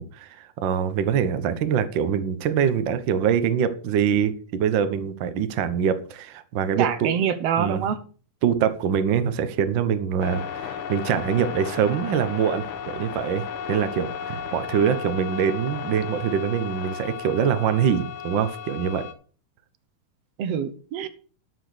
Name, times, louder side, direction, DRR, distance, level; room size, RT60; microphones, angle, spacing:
voice 1, 0.0-7.1 7.6-7.8 8.4-12.7 12.9-19.1, right 8 dB, 85° right, 10 dB, 1.0 m, -24 dB
voice 2, 6.8-8.0 20.4-21.1, right 8 dB, 65° right, 12 dB, 1.7 m, -25 dB
sound 1, 10.2-19.1, left 7 dB, 90° left, 2.7 m, -34 dB
12.0 x 6.1 x 6.3 m, 0.41 s
omnidirectional pair, 3.6 m